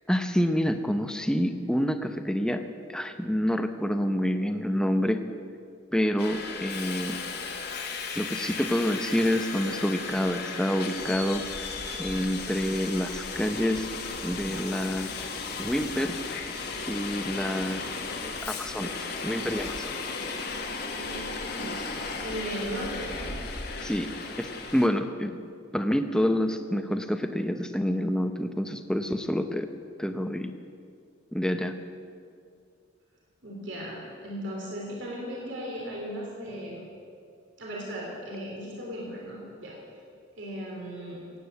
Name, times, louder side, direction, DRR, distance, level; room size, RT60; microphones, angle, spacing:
voice 1, 0.1-5.2 5.9-7.2 8.2-11.7 12.0-13.9 14.2-15.3 15.6-16.1 16.9-17.9 18.2-18.9 19.2-20.0 23.8-24.1 24.4-25.4 25.7-29.7 30.0-30.5 31.3-31.8, equal, 5° left, 7 dB, 0.7 m, -28 dB
Subway metro underground, 6.2-24.9, left 4 dB, 50° left, 1.3 m, -35 dB
voice 2, 20.9-23.3 33.4-36.8 37.6-39.8 40.3-41.2, equal, 65° right, -3 dB, 3.3 m, -37 dB
17.0 x 9.2 x 8.1 m, 2.4 s
head